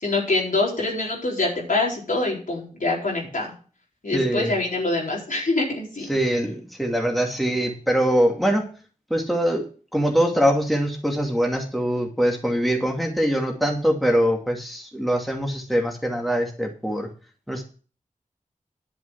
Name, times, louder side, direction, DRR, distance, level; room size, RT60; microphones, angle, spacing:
voice 1, 0.0-3.5 4.0-6.0, left 2 dB, 75° left, -3 dB, 4.4 m, -25 dB
voice 2, 4.1-4.5 6.1-8.7 9.1-17.1 17.5-17.6, equal, ahead, 1 dB, 2.3 m, -23 dB
11.0 x 7.0 x 5.8 m, 0.39 s
wide cardioid pair, 60°, 14 cm